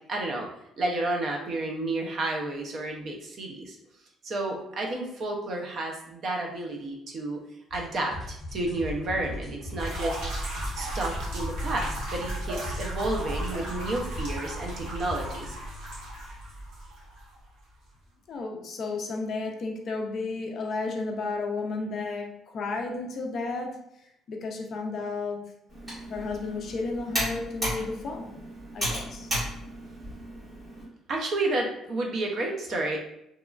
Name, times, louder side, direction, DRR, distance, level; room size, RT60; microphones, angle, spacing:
voice 1, 0.1-0.5 0.8-3.8 4.2-7.4 7.7-10.5 10.8-15.6 31.1-33.0, right 2 dB, 40° right, 1 dB, 0.5 m, -31 dB
sound 1, 7.7-15.6, left 1 dB, 25° left, 1.1 m, -40 dB
sound 2, 9.8-17.4, right 1 dB, 80° right, 0.9 m, -35 dB
voice 2, 18.3-22.3 22.5-23.8 24.3-25.4 26.1-28.4 28.7-29.3, left 3 dB, 40° left, 2 dB, 0.4 m, -32 dB
Computer keyboard, 25.7-30.8, equal, 15° right, 1.5 m, -34 dB
2.9 x 2.3 x 2.3 m, 0.79 s
cardioid pair, 175°, 0 cm